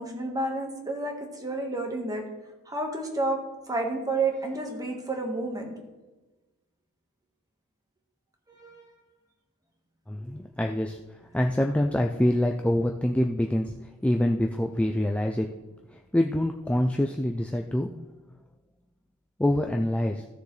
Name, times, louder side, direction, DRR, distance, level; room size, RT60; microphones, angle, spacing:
voice 1, 0.0-2.2 2.7-3.4 3.7-5.7 8.5-8.8, right 2 dB, 15° right, 2 dB, 1.5 m, -30 dB
voice 2, 10.1-13.7 14.0-15.5 15.9-18.1 19.4-20.3, left 1 dB, 5° left, 3 dB, 0.3 m, -26 dB
15.0 x 6.7 x 3.3 m, 1.1 s
head